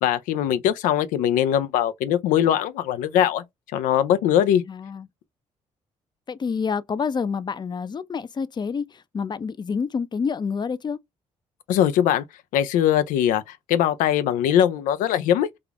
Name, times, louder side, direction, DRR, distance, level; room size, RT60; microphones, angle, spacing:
voice 1, 0.0-3.4 3.7-4.6 11.7-12.2 12.5-15.5, left 10 dB, 90° left, 0.4 m, -21 dB
voice 2, 4.7-5.1 6.3-11.0, left 5 dB, 35° left, 0.5 m, -28 dB
3.4 x 2.4 x 3.4 m
supercardioid pair, 70°, 13 cm